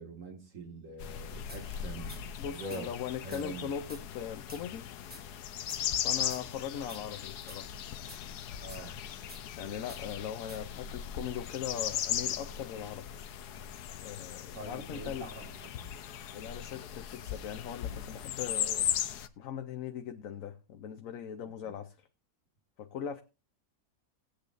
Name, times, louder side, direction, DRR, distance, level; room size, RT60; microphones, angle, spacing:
voice 1, 0.0-2.9 3.2-3.7 8.6-9.0 14.5-15.9 21.6-21.7, right 2 dB, 55° right, 4 dB, 2.4 m, -44 dB
sound 1, 1.0-19.3, left 10 dB, 90° left, 1.3 m, -38 dB
sound 2, 1.5-1.6 2.1-2.2 2.7-2.8 3.3-3.4 3.9-4.0 4.5-4.6 5.1-5.2 5.7-5.8 6.3-6.4 6.9-7.0 7.5-7.6 8.1-8.2 8.7-8.8 9.3-9.4 9.9-10.0 10.5-10.6, equal, 5° right, 1.4 m, -49 dB
voice 2, 2.4-4.9 6.0-7.7 9.6-13.1 14.0-15.3 16.3-18.9 19.4-21.9 22.8-23.2, left 9 dB, 65° left, 7 dB, 1.1 m, -40 dB
19.5 x 8.4 x 2.6 m, 0.30 s
omnidirectional pair, 1.6 m